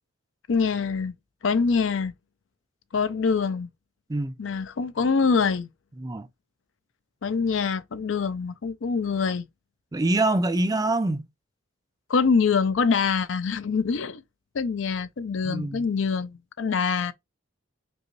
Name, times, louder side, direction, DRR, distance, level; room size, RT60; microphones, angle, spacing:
voice 1, 0.5-1.1 1.4-2.1 2.9-3.7 4.4-5.7 7.2-9.4 12.1-14.2 14.5-17.1, left 5 dB, 70° left, 0.5 m, -24 dB
voice 2, 9.9-11.3 15.4-15.9, right 2 dB, 20° right, 0.4 m, -25 dB
5.2 x 2.4 x 3.1 m
head